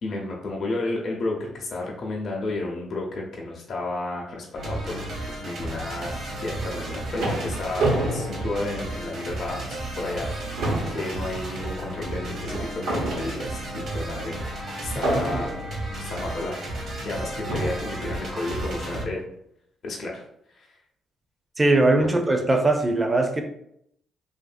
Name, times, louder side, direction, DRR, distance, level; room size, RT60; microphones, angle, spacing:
voice 1, 0.0-5.1 5.4-10.6 10.9-15.5 16.0-16.7 17.0-19.2 19.8-20.2 20.6-20.7 22.0-22.1, left 2 dB, 55° left, -2 dB, 0.7 m, -32 dB
sound 1, 4.6-19.1, right 1 dB, 60° right, 0.8 m, -33 dB
sound 2, 6.6-9.3 9.8-9.9 10.2-13.8 15.0-15.8 16.7-16.8 17.5-18.0, right 2 dB, 85° right, 0.8 m, -29 dB
voice 2, 21.6-23.4, right 2 dB, 20° right, 5 dB, 0.5 m, -20 dB
2.8 x 2.6 x 2.4 m, 0.73 s
cardioid pair, 90°, 0 cm